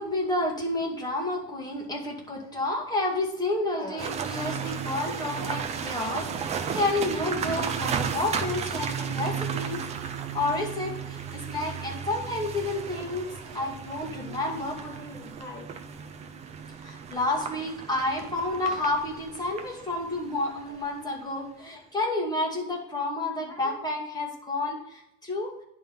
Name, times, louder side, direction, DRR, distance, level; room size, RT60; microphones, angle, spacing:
voice 1, 0.0-15.7 16.8-25.5, left 2 dB, 10° left, -2 dB, 2.1 m, -30 dB
sound 1, 4.0-21.1, right 7 dB, 15° right, 0.4 m, -34 dB
10.5 x 3.7 x 5.7 m, 0.83 s
hypercardioid pair, 115°, 48 cm